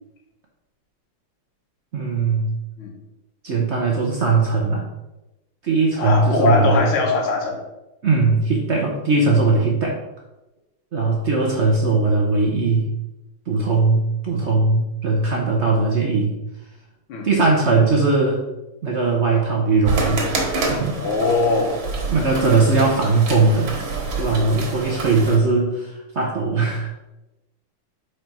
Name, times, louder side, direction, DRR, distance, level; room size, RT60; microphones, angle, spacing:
voice 1, 1.9-2.5 3.4-4.8 5.6-6.9 8.0-10.0 10.9-12.9 13.5-16.4 17.2-18.4 18.8-20.2 20.7-21.0 22.1-23.7 24.2-26.9, right 3 dB, 85° right, -1 dB, 0.6 m, -19 dB
voice 2, 6.0-7.6 11.6-11.7 17.1-17.3 21.0-21.7, left 3 dB, 75° left, 0 dB, 1.9 m, -21 dB
sound 1, 19.8-25.4, right 3 dB, 65° right, 2.0 m, -27 dB
4.8 x 4.5 x 5.2 m, 0.99 s
omnidirectional pair, 2.4 m